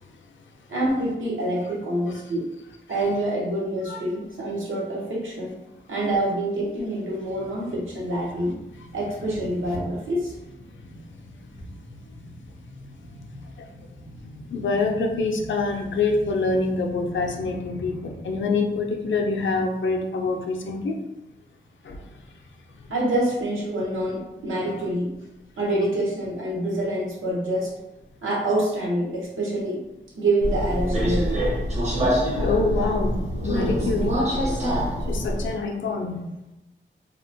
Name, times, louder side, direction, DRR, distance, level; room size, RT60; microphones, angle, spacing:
voice 1, 0.7-2.5 2.9-5.6 5.9-8.5 8.9-10.3 22.9-25.1 25.6-27.7 28.2-29.9 30.1-31.4, right 1 dB, 85° right, -4 dB, 0.8 m, -26 dB
sound 1, 7.1-20.3 20.7-20.8, left 1 dB, 60° right, 1.3 m, -44 dB
voice 2, 14.5-20.9 21.8-22.0 32.4-33.1 33.4-34.1 35.1-36.2, left 3 dB, 70° left, 2 dB, 0.4 m, -25 dB
Subway metro underground, 30.4-35.5, equal, 35° right, 0.6 m, -25 dB
2.8 x 2.1 x 2.6 m, 0.93 s
wide cardioid pair, 130°, 20 cm